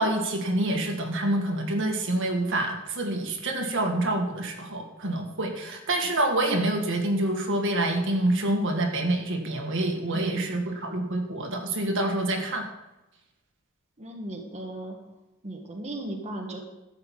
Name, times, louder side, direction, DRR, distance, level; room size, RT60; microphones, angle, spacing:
voice 1, 0.0-12.6, right 1 dB, 60° right, 2 dB, 1.9 m, -27 dB
voice 2, 10.1-10.6 14.0-15.0 15.4-16.6, right 1 dB, 30° right, 0 dB, 1.6 m, -36 dB
13.0 x 5.9 x 7.5 m, 0.99 s
head